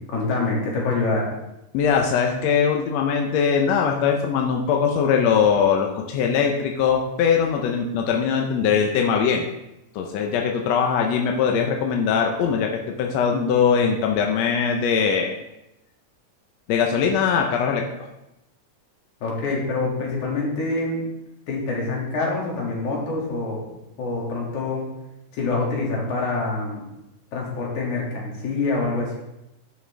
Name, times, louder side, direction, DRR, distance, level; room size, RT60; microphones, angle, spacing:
voice 1, 0.1-1.3 19.2-21.1 21.5-23.7 24.0-24.8 25.3-26.8 27.3-29.2, left 3 dB, 90° left, -3 dB, 3.6 m, -25 dB
voice 2, 1.7-9.5 10.0-15.3 16.7-17.9, left 6 dB, 75° left, 1 dB, 1.8 m, -21 dB
11.0 x 5.9 x 3.3 m, 0.90 s
omnidirectional pair, 3.3 m